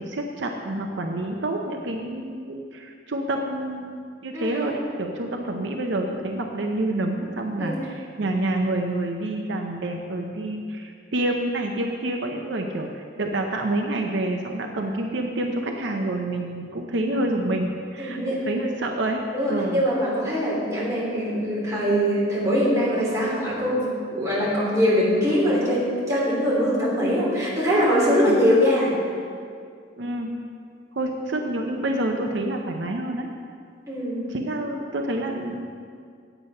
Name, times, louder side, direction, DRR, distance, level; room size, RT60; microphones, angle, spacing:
voice 1, 0.0-18.2 18.5-19.9 28.3-28.4 30.0-30.3 30.9-33.3 34.3-35.8, right 1 dB, 70° right, 2 dB, 0.7 m, -28 dB
voice 2, 4.3-4.7 7.6-7.8 18.0-18.4 19.3-29.0 33.9-34.3 34.6-34.7, equal, 15° right, -7 dB, 3.0 m, -22 dB
9.1 x 8.0 x 5.4 m, 2.2 s
head